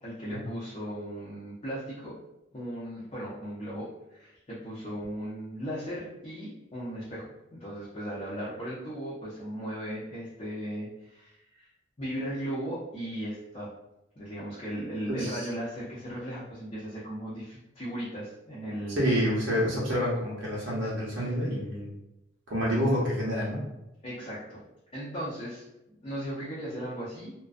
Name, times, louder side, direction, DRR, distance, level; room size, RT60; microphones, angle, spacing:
voice 1, 0.0-2.1 2.5-11.7 12.0-13.7 14.2-19.1 21.1-21.2 24.0-24.6 24.9-25.6 26.0-27.3, equal, 30° left, -10 dB, 0.6 m, -37 dB
voice 2, 15.1-15.4 19.0-21.9 22.5-23.6, equal, 70° right, -5 dB, 0.8 m, -28 dB
2.4 x 2.1 x 2.4 m, 0.90 s
head